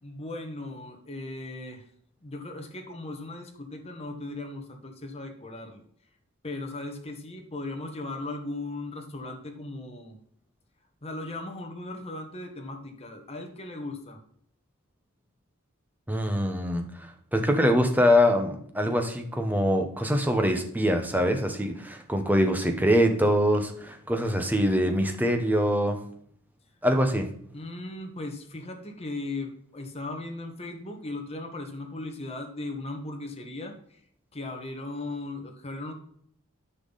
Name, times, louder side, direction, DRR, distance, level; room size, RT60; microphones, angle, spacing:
voice 1, 0.0-1.8 2.2-5.8 6.4-10.2 11.0-14.2 27.5-34.0 34.3-35.9, left 2 dB, 30° left, 3 dB, 1.5 m, -37 dB
voice 2, 16.1-26.0 26.8-27.3, equal, 10° right, 5 dB, 1.1 m, -24 dB
9.7 x 6.0 x 4.1 m, 0.64 s
head